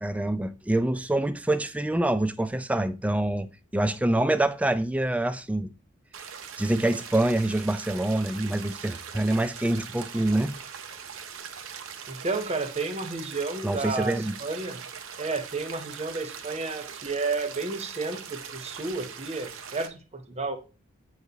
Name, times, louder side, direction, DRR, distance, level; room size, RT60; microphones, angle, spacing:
voice 1, 0.0-5.7 6.6-10.5 13.6-14.3, right 1 dB, 5° right, 0.3 m, -26 dB
sound 1, 6.1-19.9, right 7 dB, 85° right, 0.7 m, -41 dB
voice 2, 12.1-14.8 15.2-20.6, right 3 dB, 35° right, 0.8 m, -32 dB
8.0 x 4.8 x 2.7 m
head